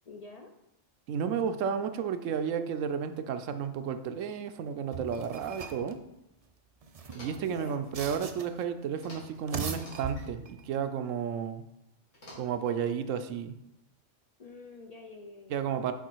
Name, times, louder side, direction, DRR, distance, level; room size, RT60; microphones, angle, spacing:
voice 1, 0.1-0.5 7.4-7.8 14.4-15.9, left 3 dB, 60° left, 4 dB, 0.4 m, -47 dB
voice 2, 1.1-6.0 7.1-11.6 12.4-13.5 15.5-15.9, right 7 dB, 80° right, 10 dB, 1.0 m, -32 dB
sound 1, 4.9-5.9 6.8-8.6 9.3-10.6, right 5 dB, 50° right, 0.4 m, -40 dB
sound 2, 7.0-7.6 9.0-9.4 9.7-10.3 12.1-12.8, left 1 dB, 75° left, 2.6 m, -50 dB
7.1 x 4.8 x 4.5 m, 0.88 s
omnidirectional pair, 1.3 m